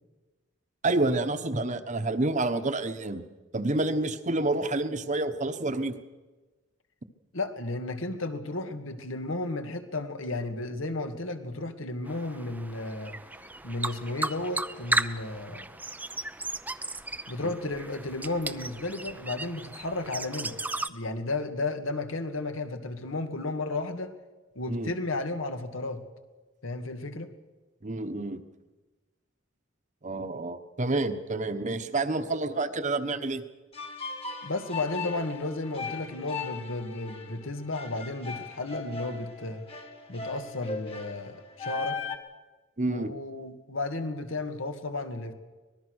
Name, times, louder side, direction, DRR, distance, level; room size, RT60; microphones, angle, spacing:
voice 1, 0.8-3.2 3.5-6.0 24.7-24.9 27.8-28.4 30.0-33.4 42.8-43.1, right 2 dB, 40° right, 9 dB, 1.2 m, -28 dB
voice 2, 7.3-13.2 13.6-15.7 17.3-20.6 20.9-24.1 24.6-26.0 26.6-27.3 34.4-39.7 40.1-42.0 42.9-45.3, left 2 dB, 80° left, 7 dB, 2.0 m, -33 dB
sound 1, 12.0-20.9, right 2 dB, 10° right, 0.6 m, -35 dB
sound 2, 33.7-42.2, left 5 dB, 30° left, 1.8 m, -38 dB
24.5 x 19.5 x 6.5 m, 1.2 s
head